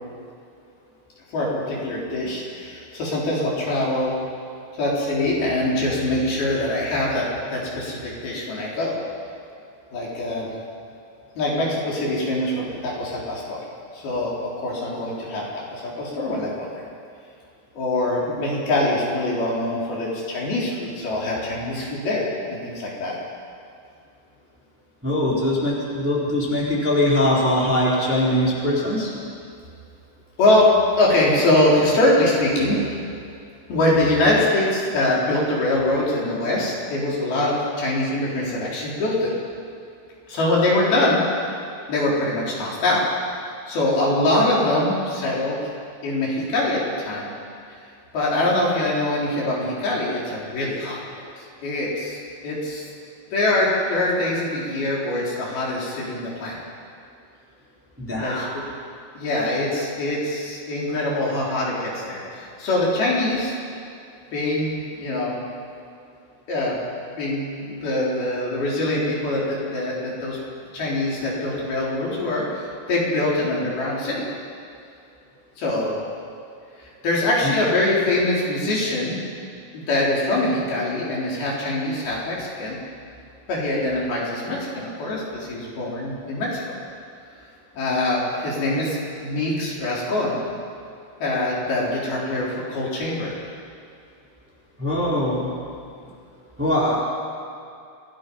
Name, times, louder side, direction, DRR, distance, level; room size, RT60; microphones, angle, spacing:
voice 1, 1.3-4.2 4.8-9.0 9.9-10.5 11.4-13.6 13.9-15.5 15.8-16.7 17.7-23.2 30.4-30.7 31.0-32.8 33.7-39.3 40.3-41.5 41.9-43.0 43.7-45.6 46.0-47.3 48.1-52.9 53.3-56.6 58.1-58.6 59.2-63.5 64.3-65.4 66.5-66.8 67.1-70.4 70.7-74.3 75.6-76.0 77.0-79.1 79.7-82.8 83.5-86.8 87.7-90.4 91.2-93.3, left 1 dB, 70° left, -5 dB, 6.1 m, -23 dB
voice 2, 25.0-29.1 58.0-58.5 77.4-77.5 94.8-95.5 96.6-97.0, left 1 dB, 5° right, -6 dB, 4.0 m, -22 dB
27.5 x 19.0 x 5.6 m, 2.4 s
omnidirectional pair, 4.6 m